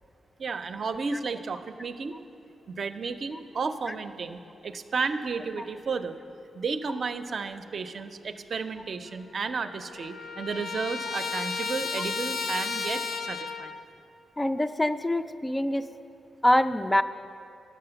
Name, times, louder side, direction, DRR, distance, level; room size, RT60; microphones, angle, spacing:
voice 1, 0.4-2.2 2.7-6.2 6.5-13.7, right 4 dB, 55° right, 9 dB, 0.5 m, -33 dB
Trumpet, 9.1-9.2 9.4-13.8, left 5 dB, 85° left, 0.8 m, -33 dB
voice 2, 14.4-15.9 16.4-17.0, left 1 dB, 15° left, 9 dB, 0.3 m, -24 dB
11.0 x 7.3 x 6.9 m, 2.8 s
cardioid pair, 105°, 0 cm